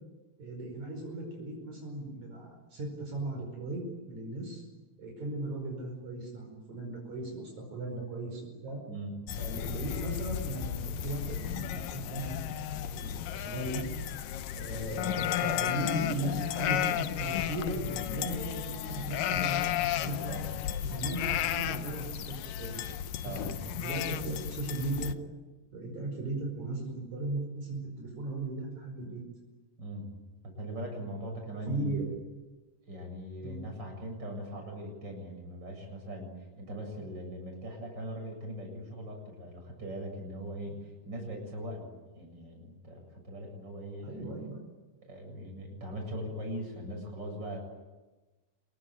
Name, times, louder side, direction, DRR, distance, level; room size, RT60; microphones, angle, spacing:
voice 1, 0.4-4.6 5.0-8.8 9.4-10.7 11.0-12.4 12.8-13.9 14.6-19.7 20.0-20.3 20.8-22.8 23.2-25.1 25.7-29.2 31.7-32.1 33.4-33.6 44.0-44.6, right 2 dB, 60° right, 0 dB, 6.5 m, -37 dB
sound 1, 9.3-25.1, left 11 dB, 85° left, 2.7 m, -34 dB
voice 2, 29.8-30.1 30.4-32.0 32.8-41.9 42.1-44.3 45.0-47.6, equal, 30° right, 2 dB, 8.1 m, -40 dB
28.0 x 22.0 x 9.3 m, 1.2 s
omnidirectional pair, 3.8 m